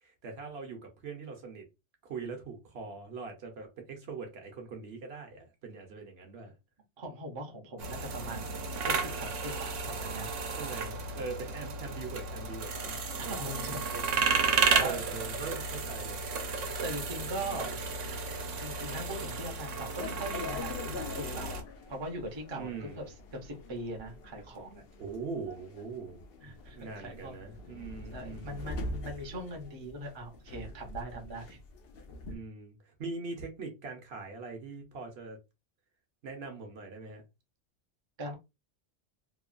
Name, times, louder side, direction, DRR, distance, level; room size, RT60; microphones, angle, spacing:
voice 1, 0.0-1.6 2.0-6.5 10.6-12.9 13.2-13.5 14.8-16.2 17.3-17.7 22.6-23.1 25.0-28.6 32.3-35.4 36.2-37.2, right 4 dB, 60° right, 0.9 m, -42 dB
voice 2, 7.0-10.3 13.2-14.4 14.7-15.0 16.8-17.8 18.6-24.8 26.4-27.4 28.1-31.6 38.2-38.4, right 1 dB, 30° right, 0.6 m, -41 dB
sound 1, 7.8-21.6, right 4 dB, 85° right, 1.0 m, -33 dB
sound 2, 20.0-32.4, left 2 dB, 60° left, 0.7 m, -44 dB
2.9 x 2.2 x 2.4 m
omnidirectional pair, 1.2 m